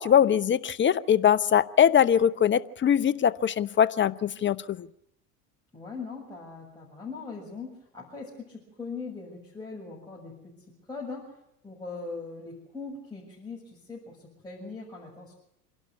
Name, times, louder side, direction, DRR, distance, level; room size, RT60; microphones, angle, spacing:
voice 1, 0.0-4.9, left 9 dB, 25° left, 0.8 m, -22 dB
voice 2, 5.7-10.3 10.9-11.3 11.6-14.2 14.4-15.3, left 4 dB, 10° left, 7.0 m, -40 dB
27.5 x 12.0 x 8.4 m
hypercardioid pair, 90°, 46 cm